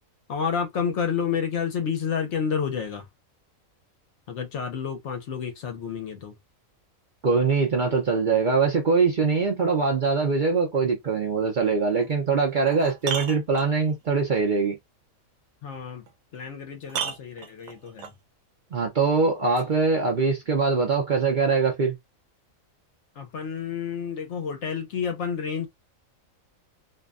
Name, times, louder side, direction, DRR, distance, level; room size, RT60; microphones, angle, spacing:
voice 1, 0.3-3.1 4.3-6.4 15.6-16.0 16.3-18.1 23.2-25.7, left 7 dB, 65° left, 0.9 m, -30 dB
voice 2, 7.2-14.8 18.7-22.0, right 4 dB, 50° right, 0.6 m, -23 dB
sound 1, 12.0-12.1 12.6-14.1 16.1-16.2 16.9-18.2 19.6-19.7, right 7 dB, 85° right, 1.0 m, -34 dB
2.6 x 2.1 x 2.3 m
omnidirectional pair, 1.4 m